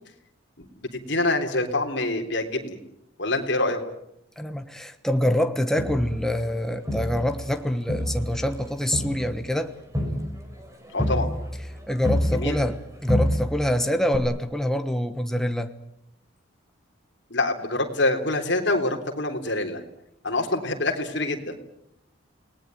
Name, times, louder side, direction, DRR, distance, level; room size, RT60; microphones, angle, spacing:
voice 1, 0.6-2.8 3.2-3.8 10.9-11.3 12.3-12.6 17.3-19.8 20.2-21.6, left 2 dB, 60° left, 3.6 m, -26 dB
voice 2, 4.4-9.7 11.9-15.7, left 1 dB, ahead, 1.2 m, -25 dB
Crowd, 5.8-7.6 7.9-12.8 13.1-13.7 14.1-14.2, equal, 15° right, 4.8 m, -28 dB
29.5 x 19.5 x 9.2 m
head